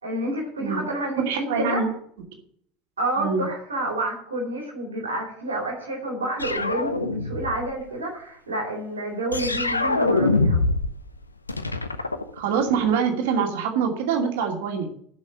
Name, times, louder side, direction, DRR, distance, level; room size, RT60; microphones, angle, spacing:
voice 1, 0.0-1.9 3.0-10.6, right 1 dB, 80° right, -1 dB, 3.8 m, -29 dB
voice 2, 1.2-1.9 3.2-3.5 12.3-14.9, right 6 dB, 60° right, 3 dB, 2.5 m, -24 dB
sound 1, 6.4-7.7 9.3-11.0 11.2-12.9, left 3 dB, 85° left, 0.7 m, -24 dB
11.5 x 6.4 x 9.2 m, 0.64 s
figure-of-eight pair, 70°, 0 cm